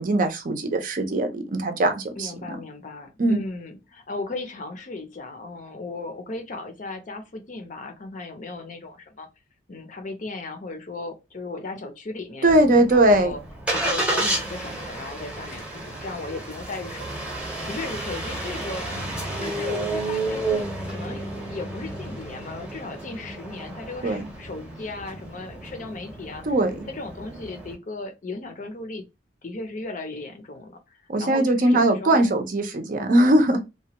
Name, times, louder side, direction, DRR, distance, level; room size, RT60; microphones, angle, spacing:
voice 1, 0.0-2.6 3.2-3.4 12.4-13.3 24.0-24.3 26.5-26.7 31.1-33.6, right 1 dB, 45° right, 0.5 m, -20 dB
voice 2, 2.2-9.3 9.7-13.4 13.7-17.1 17.4-18.9 19.1-26.4 26.9-29.1 29.4-32.3, left 3 dB, 45° left, 0.6 m, -36 dB
Engine starting, 12.5-27.7, right 2 dB, 5° right, 0.8 m, -31 dB
2.9 x 2.2 x 2.8 m
head